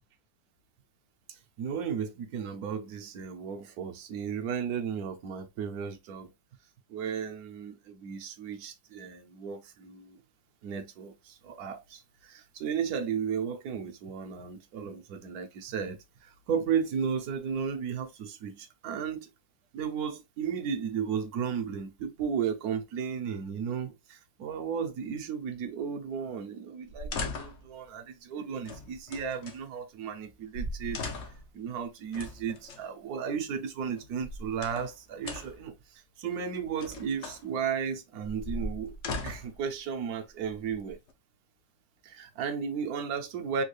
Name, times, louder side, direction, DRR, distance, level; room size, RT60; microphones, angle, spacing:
voice 1, 1.3-6.3 6.9-10.2 10.6-19.3 19.7-31.0 31.5-39.0 39.2-41.0 42.0-43.6, right 7 dB, 70° right, 1.0 m, -34 dB
sound 1, 26.9-27.7 28.6-29.6 30.2-30.3 30.5-31.5 32.1-32.8 34.0-34.9 35.2-35.7 36.5-37.4 38.2-39.6 40.4-41.1, left 2 dB, 65° left, 0.7 m, -38 dB
3.5 x 2.3 x 3.1 m
omnidirectional pair, 1.9 m